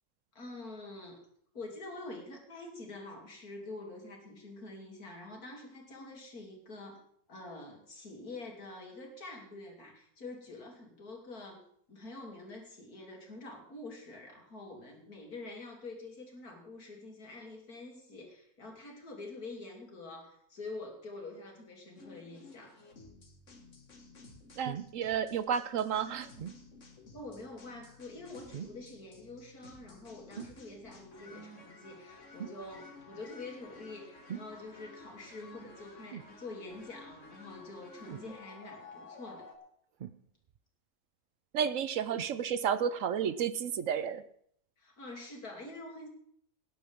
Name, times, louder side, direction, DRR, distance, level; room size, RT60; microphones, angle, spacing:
voice 1, 0.3-1.2 1.5-7.0 7.3-11.6 11.9-22.8 27.1-39.5 44.8-46.1, left 2 dB, 80° left, 0 dB, 3.4 m, -46 dB
sound 1, 22.0-39.6, left 3 dB, 55° left, 2.2 m, -53 dB
voice 2, 24.6-26.3 41.5-44.2, right 8 dB, 65° right, 13 dB, 1.0 m, -31 dB
sound 2, 24.6-25.0 26.4-26.6 28.5-28.9 30.4-30.6 32.4-32.6 34.3-34.5 36.1-36.4 38.1-38.3 40.0-40.6 42.1-42.4 43.2-43.3, right 9 dB, 85° right, 0.4 m, -42 dB
19.0 x 10.0 x 3.6 m, 0.66 s
omnidirectional pair, 1.6 m